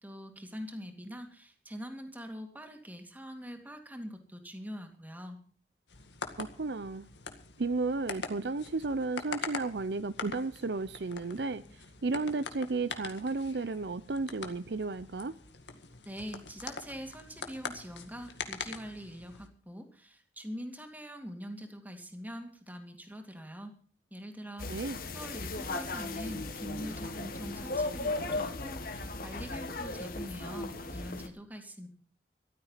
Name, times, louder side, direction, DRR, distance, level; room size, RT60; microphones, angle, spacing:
voice 1, 0.0-5.4 16.0-23.7 24.1-31.9, equal, 10° right, 2.5 m, -44 dB
sound 1, 5.9-19.5, left 5 dB, 80° left, 2.0 m, -44 dB
voice 2, 6.4-7.1 7.6-11.6 12.0-15.3 24.7-25.0, right 3 dB, 70° right, 0.6 m, -33 dB
sound 2, 24.6-31.3, left 2 dB, 55° left, 1.8 m, -36 dB
14.5 x 13.0 x 5.7 m
head